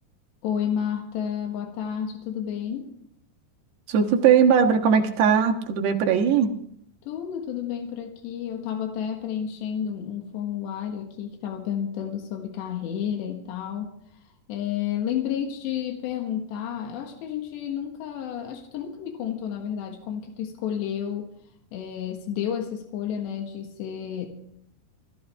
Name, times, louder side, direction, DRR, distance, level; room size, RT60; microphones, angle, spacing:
voice 1, 0.4-2.9 7.0-13.9 14.5-21.3 21.7-24.3, left 9 dB, 90° left, 3 dB, 3.8 m, -31 dB
voice 2, 3.9-6.5, right 7 dB, 75° right, 4 dB, 3.5 m, -19 dB
27.5 x 14.5 x 3.5 m, 0.69 s
omnidirectional pair, 4.9 m